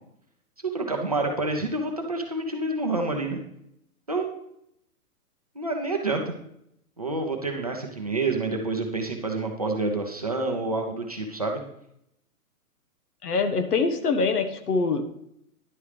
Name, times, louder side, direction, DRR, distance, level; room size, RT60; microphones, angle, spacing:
voice 1, 0.7-3.4 4.1-4.3 5.6-6.3 7.0-11.6, right 2 dB, 25° right, 1 dB, 0.5 m, -28 dB
voice 2, 13.2-15.0, left 4 dB, 85° left, 9 dB, 1.4 m, -24 dB
10.5 x 7.9 x 3.3 m, 0.77 s
hypercardioid pair, 175°, 45 cm